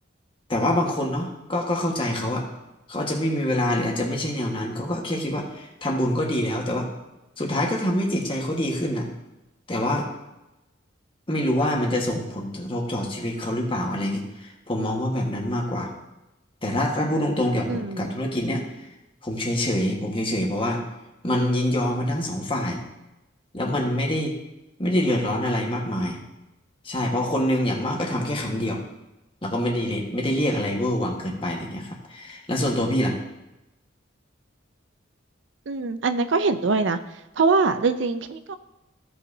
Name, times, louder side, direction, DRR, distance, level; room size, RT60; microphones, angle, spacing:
voice 1, 0.5-2.4 2.9-6.9 7.4-9.1 9.7-10.1 11.3-15.9 16.6-18.6 19.2-20.8 21.2-22.8 23.5-24.3 24.8-26.2 26.8-28.8 29.4-33.2, left 1 dB, 25° left, -1 dB, 1.4 m, -25 dB
voice 2, 17.7-18.2 35.7-37.0 37.4-38.6, right 4 dB, 70° right, 11 dB, 0.5 m, -23 dB
15.5 x 5.7 x 2.7 m, 0.98 s
head